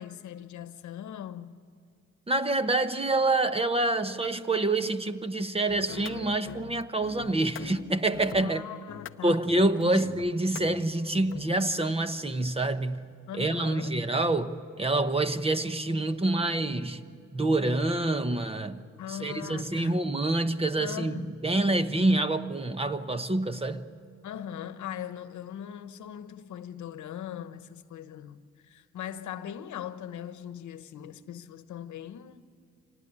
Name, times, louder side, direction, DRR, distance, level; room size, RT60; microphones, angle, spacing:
voice 1, 0.0-1.6 8.4-9.4 9.8-10.1 13.3-14.0 19.0-20.0 20.8-21.4 24.2-32.5, left 10 dB, 70° left, 1.1 m, -40 dB
voice 2, 2.3-8.6 9.2-13.0 13.3-17.0 17.3-23.8, right 2 dB, 20° right, 1.1 m, -27 dB
sound 1, 5.7-11.9, left 9 dB, 45° left, 0.7 m, -44 dB
26.0 x 18.5 x 9.8 m
cardioid pair, 90°, 30 cm